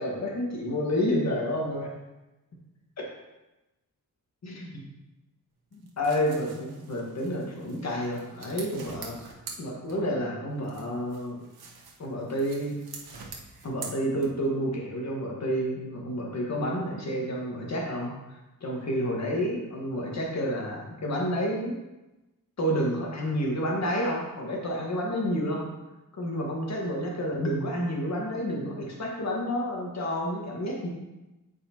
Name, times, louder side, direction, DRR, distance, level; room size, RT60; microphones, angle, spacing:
voice 1, 0.0-1.9 3.0-3.1 4.4-4.7 5.7-9.3 9.6-11.4 12.0-12.8 13.6-21.8 22.6-25.7 26.1-30.9, equal, 45° left, -2 dB, 1.7 m, -30 dB
sound 1, 5.7-10.3 10.6-14.6, right 4 dB, 80° right, 1.4 m, -45 dB
8.5 x 4.8 x 4.5 m, 1.0 s
wide cardioid pair, 160°, 37 cm